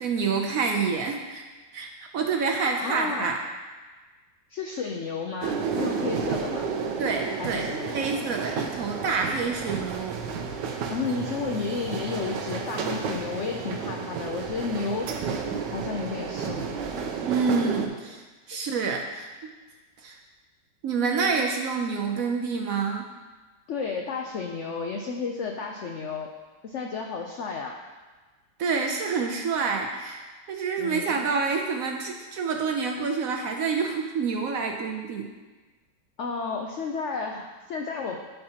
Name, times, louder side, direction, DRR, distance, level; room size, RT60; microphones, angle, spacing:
voice 1, 0.0-1.4 1.7-3.4 7.0-7.6 7.9-10.2 17.3-19.5 20.0-20.2 20.8-23.1 28.6-30.2 30.5-35.3, right 5 dB, 65° right, 2 dB, 0.9 m, -27 dB
voice 2, 2.8-3.3 4.5-6.7 7.4-8.0 10.9-15.1 15.7-16.8 18.5-18.6 23.7-26.3 26.6-27.8 30.8-31.1 36.2-38.2, left 5 dB, 75° left, 2 dB, 0.6 m, -32 dB
sound 1, 5.4-17.9, right 5 dB, 85° right, 1.4 m, -31 dB
12.5 x 4.5 x 2.8 m, 1.3 s
omnidirectional pair, 1.9 m